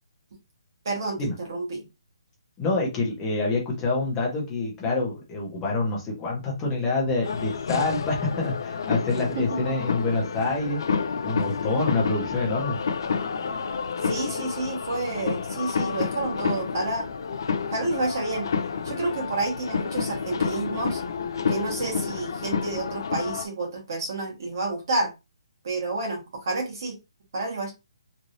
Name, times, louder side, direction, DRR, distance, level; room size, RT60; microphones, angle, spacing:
voice 1, 0.8-1.8 9.3-9.6 14.0-17.1 17.7-18.5 18.8-21.0 21.5-25.1 25.6-26.9 27.3-27.7, right 2 dB, 40° right, 1 dB, 1.3 m, -29 dB
voice 2, 2.6-10.8 11.2-12.8, left 3 dB, 10° left, -3 dB, 0.8 m, -26 dB
sound 1, 7.2-23.5, left 5 dB, 45° left, 0.3 m, -29 dB
3.1 x 2.6 x 2.6 m, 0.25 s
hypercardioid pair, 175°, 3 cm